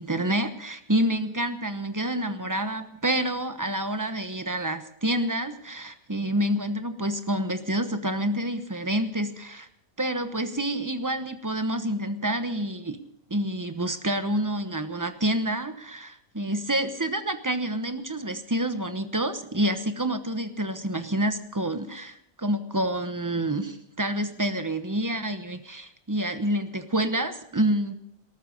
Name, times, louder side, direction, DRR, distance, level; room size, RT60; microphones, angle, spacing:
voice 1, 0.0-9.7 10.0-13.0 13.3-27.9, right 1 dB, 15° right, 9 dB, 0.9 m, -28 dB
19.5 x 13.5 x 5.2 m, 0.74 s
omnidirectional pair, 1.4 m